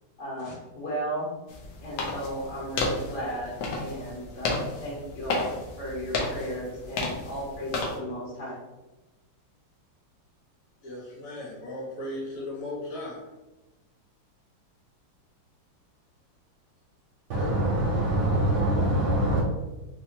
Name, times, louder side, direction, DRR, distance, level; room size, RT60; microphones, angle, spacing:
voice 1, 0.2-1.3 1.8-8.6, equal, 85° left, -5 dB, 2.3 m, -35 dB
sound 1, 1.5-8.0, left 3 dB, 70° left, 1.3 m, -33 dB
voice 2, 10.8-13.3 17.4-17.5, left 1 dB, 45° left, -6 dB, 1.3 m, -37 dB
voice 3, 17.3-19.4, right 1 dB, 70° right, -4 dB, 1.1 m, -24 dB
4.4 x 2.2 x 2.7 m, 1.1 s
omnidirectional pair, 2.4 m